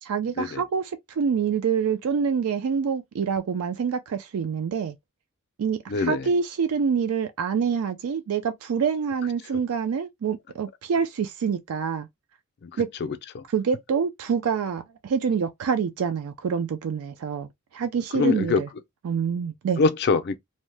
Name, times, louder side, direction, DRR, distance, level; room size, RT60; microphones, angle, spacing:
voice 1, 0.0-5.0 5.6-12.1 12.8-12.9 13.5-18.7 19.0-19.8, right 6 dB, 80° right, 0.4 m, -26 dB
voice 2, 5.9-6.3 12.6-12.7 13.0-13.4 18.1-18.6 19.8-20.4, left 4 dB, 50° left, 0.4 m, -24 dB
2.7 x 2.1 x 3.2 m
head